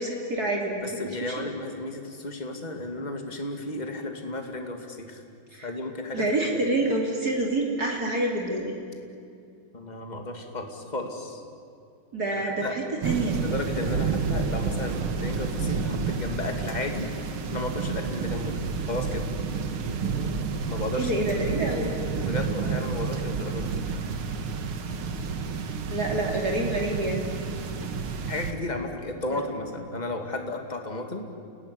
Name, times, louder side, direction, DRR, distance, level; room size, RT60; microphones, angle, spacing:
voice 1, 0.0-0.8 5.6-5.7 6.1-8.8 12.1-13.4 21.0-21.9 25.9-27.3, right 2 dB, 45° right, 0 dB, 3.5 m, -27 dB
voice 2, 0.8-5.2 5.6-6.6 9.7-11.4 12.4-12.8 13.4-17.1 17.5-18.6 18.9-19.3 20.7-21.1 21.4-21.5 22.2-23.6 28.2-31.3, left 2 dB, 20° left, 4 dB, 2.3 m, -33 dB
sound 1, 13.0-28.5, right 5 dB, 75° right, 2.4 m, -30 dB
29.5 x 18.0 x 10.0 m, 2.3 s
omnidirectional pair, 2.4 m